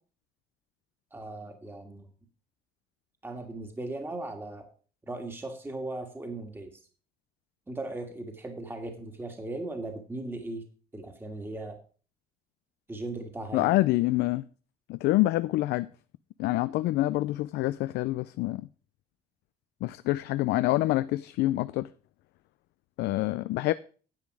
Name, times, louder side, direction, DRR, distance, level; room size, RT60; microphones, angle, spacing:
voice 1, 1.1-2.1 3.2-4.7 5.1-6.7 7.7-10.6 10.9-11.8 12.9-13.7, right 2 dB, 15° right, 1.8 m, -38 dB
voice 2, 13.5-14.4 14.9-15.9 16.4-18.7 19.8-21.9 23.0-23.7, left 17 dB, 80° left, 0.4 m, -26 dB
10.5 x 7.6 x 4.8 m
cardioid pair, 110°, 17 cm